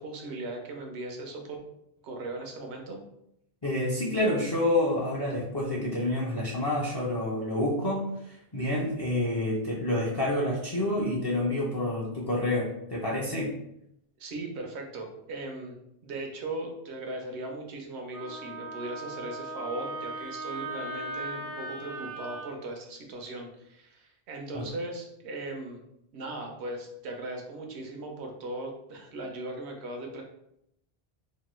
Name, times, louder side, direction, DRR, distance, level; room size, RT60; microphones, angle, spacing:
voice 1, 0.0-1.6 2.0-3.0 14.2-25.8 26.1-30.2, right 2 dB, 90° right, 2 dB, 0.9 m, -38 dB
voice 2, 3.6-13.5 24.5-24.6, left 1 dB, 40° left, -5 dB, 0.4 m, -28 dB
Wind instrument woodwind instrument, 18.1-22.5, right 2 dB, 50° right, 0.4 m, -38 dB
2.9 x 2.2 x 3.0 m, 0.79 s
omnidirectional pair, 1.1 m